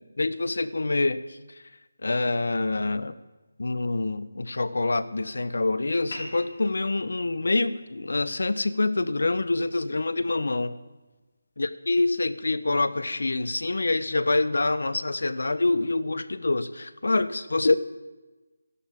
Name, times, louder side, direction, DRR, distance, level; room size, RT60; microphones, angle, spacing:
voice 1, 0.0-1.4 2.0-3.1 3.6-10.8 11.6-17.8, left 2 dB, 70° left, 13 dB, 1.0 m, -26 dB
sound 1, 6.1-11.1, left 2 dB, 45° left, 4.9 m, -47 dB
27.0 x 11.5 x 3.7 m, 1.2 s
figure-of-eight pair, 165°, 0 cm